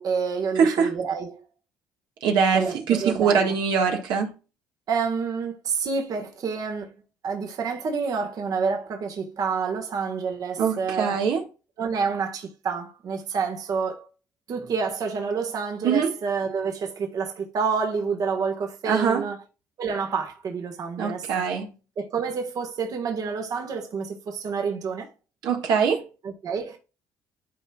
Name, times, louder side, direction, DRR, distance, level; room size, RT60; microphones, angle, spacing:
voice 1, 0.0-1.4 2.5-3.5 4.9-6.9 7.2-11.2 11.8-14.1 14.5-19.4 19.8-21.5 22.0-25.1 26.2-26.8, right 5 dB, 55° right, 1.5 m, -28 dB
voice 2, 0.6-0.9 2.2-4.3 10.6-11.4 15.8-16.1 18.8-19.2 21.0-21.7 25.4-26.1, right 6 dB, 75° right, 1.6 m, -23 dB
12.0 x 4.4 x 2.4 m
cardioid pair, 85°, 8 cm